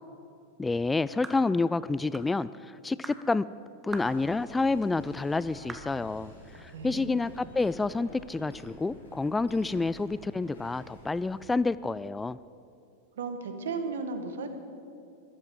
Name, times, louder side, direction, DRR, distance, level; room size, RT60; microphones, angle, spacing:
voice 1, 0.6-3.5 3.8-12.4, left 3 dB, 10° left, 18 dB, 0.3 m, -29 dB
sound 1, 1.2-1.5 2.1-2.3 3.0-3.2 3.9-4.2 4.8-4.9 5.7-5.9, right 3 dB, 15° right, 1.4 m, -41 dB
sound 2, 3.9-11.5, equal, 85° left, 4.1 m, -50 dB
voice 2, 6.7-7.2 13.2-14.5, right 4 dB, 70° right, 8 dB, 1.6 m, -35 dB
13.5 x 12.0 x 7.5 m, 2.6 s
figure-of-eight pair, 90°, 0 cm